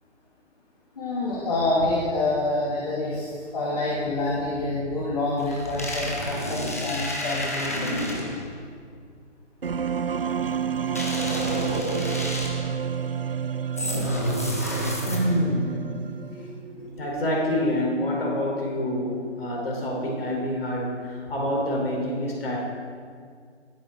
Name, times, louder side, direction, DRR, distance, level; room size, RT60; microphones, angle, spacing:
voice 1, 1.0-7.9, left 2 dB, 30° left, -6 dB, 2.9 m, -27 dB
sound 1, 5.4-8.5 11.0-12.8 13.8-15.5, left 1 dB, 15° left, 0.8 m, -30 dB
sound 2, 9.6-16.6, right 7 dB, 50° right, 0.4 m, -29 dB
voice 2, 15.0-22.6, left 1 dB, 55° left, -2 dB, 5.1 m, -27 dB
18.5 x 13.0 x 4.8 m, 2.1 s
hypercardioid pair, 175°, 36 cm